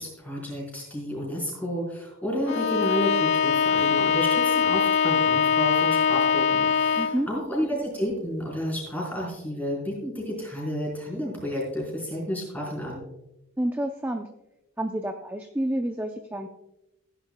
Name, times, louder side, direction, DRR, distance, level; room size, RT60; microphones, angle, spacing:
voice 1, 0.0-13.1, equal, 5° left, -3 dB, 4.4 m, -31 dB
Bowed string instrument, 2.5-7.3, left 6 dB, 50° left, 0.4 m, -22 dB
voice 2, 6.9-7.3 13.6-14.3 14.8-16.5, right 1 dB, 10° right, 5 dB, 0.5 m, -29 dB
16.0 x 10.5 x 2.2 m, 0.91 s
head